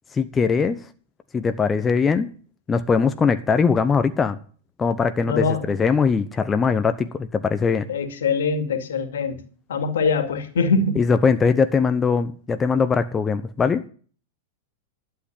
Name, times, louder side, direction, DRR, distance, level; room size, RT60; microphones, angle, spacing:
voice 1, 0.1-0.8 1.3-2.3 2.7-4.4 4.8-7.9 11.0-13.8, left 5 dB, 20° left, 0.9 m, -21 dB
voice 2, 5.3-5.7 7.9-9.4 9.7-11.0, left 4 dB, 70° left, 2.3 m, -23 dB
12.0 x 8.0 x 7.2 m
hypercardioid pair, 100°, 0 cm